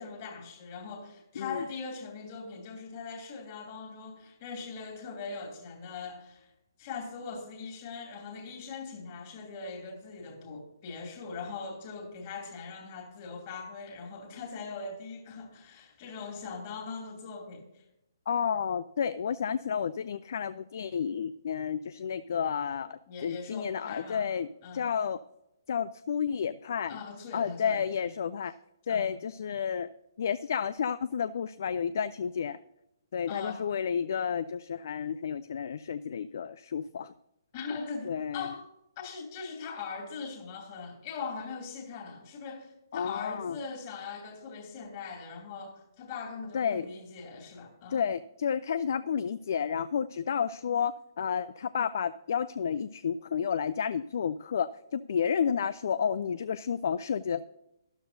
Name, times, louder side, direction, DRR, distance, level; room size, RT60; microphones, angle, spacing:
voice 1, 0.0-6.5 6.8-17.8 23.1-24.3 24.6-24.9 26.9-28.1 28.9-29.1 33.3-33.6 37.5-38.6 39.0-48.1, left 4 dB, 30° left, 2.5 m, -41 dB
voice 2, 18.3-24.5 24.7-25.2 25.7-27.0 27.3-28.5 28.9-29.9 30.2-32.6 33.1-37.1 38.0-38.5 42.9-43.6 46.5-46.9 47.9-57.4, left 7 dB, 50° left, 0.4 m, -31 dB
12.5 x 12.5 x 2.6 m
figure-of-eight pair, 130°, 2 cm